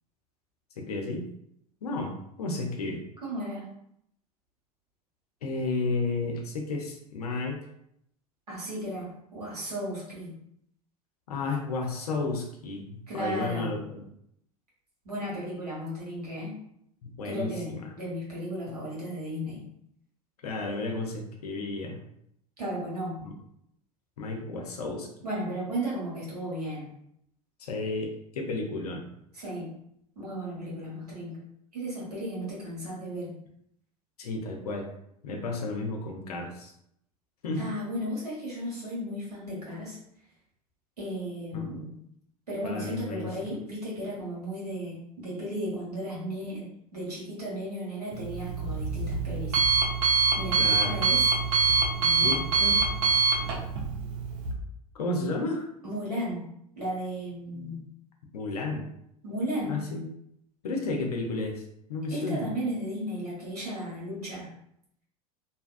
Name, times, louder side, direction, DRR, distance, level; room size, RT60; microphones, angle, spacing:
voice 1, 0.8-1.3 1.8-2.1 2.4-3.0 5.4-7.6 11.3-14.0 17.0-17.9 18.7-18.8 20.4-22.0 23.2-23.3 24.2-25.1 27.6-29.1 34.2-34.9 35.2-36.7 37.4-37.6 41.5-41.7 42.6-43.3 50.6-50.9 52.2-52.9 54.9-55.7 58.3-58.9 59.7-60.1 60.6-61.6 61.9-62.5, left 3 dB, 80° left, 2 dB, 0.6 m, -32 dB
voice 2, 3.2-3.7 8.5-10.3 13.1-13.7 15.0-16.6 17.2-19.6 22.6-23.2 25.2-26.9 29.3-29.7 30.2-31.4 31.7-33.3 37.6-40.0 41.0-41.9 42.5-49.6 50.3-51.3 52.0-52.5 55.8-56.5 56.8-57.8 59.2-59.8 62.1-64.5, equal, 85° right, -6 dB, 1.3 m, -35 dB
Alarm, 48.1-54.5, right 4 dB, 60° right, 0.8 m, -25 dB
2.7 x 2.2 x 2.4 m, 0.73 s
figure-of-eight pair, 80°, 20 cm